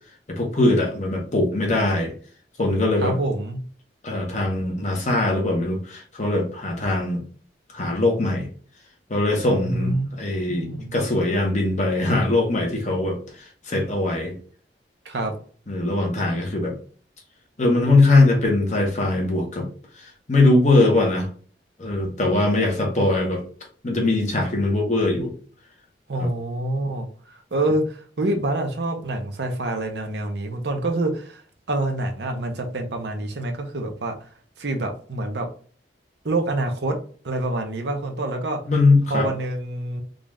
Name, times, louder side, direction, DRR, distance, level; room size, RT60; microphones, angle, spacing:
voice 1, 0.3-2.1 2.6-3.1 4.0-7.2 7.7-8.5 9.1-13.2 13.7-14.4 15.7-16.7 17.6-19.7 20.3-21.3 21.8-23.4 23.8-25.3 26.2-26.3 38.7-39.3, left 2 dB, 45° left, 1 dB, 1.0 m, -21 dB
voice 2, 3.0-3.6 9.6-10.1 10.5-10.9 15.0-15.3 26.1-31.4 31.7-34.3 34.6-35.5 36.2-37.0 37.2-38.6 39.1-40.0, right 2 dB, 70° right, 4 dB, 0.8 m, -26 dB
3.9 x 2.5 x 3.2 m, 0.43 s
head